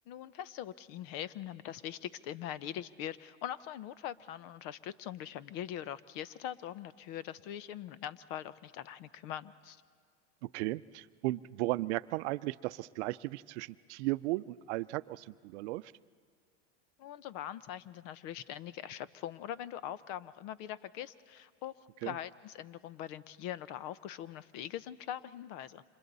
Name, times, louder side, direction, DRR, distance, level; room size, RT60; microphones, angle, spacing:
voice 1, 0.1-9.8 17.0-25.8, left 11 dB, 55° left, 17 dB, 0.9 m, -42 dB
voice 2, 10.4-15.9 22.0-22.1, right 19 dB, 70° right, 15 dB, 0.6 m, -35 dB
30.0 x 26.5 x 4.1 m, 2.1 s
supercardioid pair, 115°, 36 cm